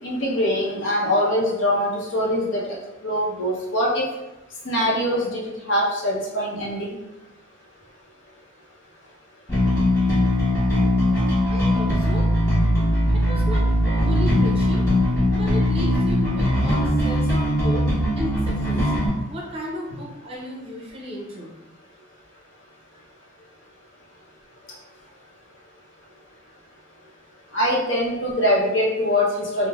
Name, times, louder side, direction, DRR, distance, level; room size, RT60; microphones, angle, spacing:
voice 1, 0.0-2.8 3.0-4.0 4.6-6.9 27.5-29.7, equal, 75° left, -4 dB, 0.7 m, -23 dB
Bass guitar, 9.5-19.1, left 1 dB, 20° left, 1.1 m, -20 dB
voice 2, 11.5-12.2 13.1-14.8 15.3-17.8 18.1-18.8 19.3-21.5, left 1 dB, 30° right, -3 dB, 0.6 m, -34 dB
3.2 x 2.1 x 2.3 m, 0.95 s
head